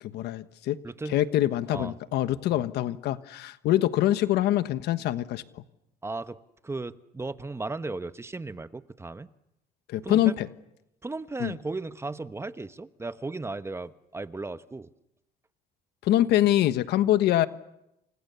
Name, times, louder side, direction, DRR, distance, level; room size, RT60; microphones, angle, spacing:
voice 1, 0.0-0.8 1.1-5.6 9.9-10.5 11.4-11.5 16.0-17.5, left 13 dB, 80° left, 13 dB, 1.3 m, -24 dB
voice 2, 0.8-1.2 1.7-1.9 2.5-2.6 6.0-9.3 10.0-10.4 11.0-14.9, right 3 dB, 15° right, 13 dB, 1.0 m, -36 dB
29.5 x 27.5 x 7.0 m, 0.87 s
cardioid pair, 110°, 17 cm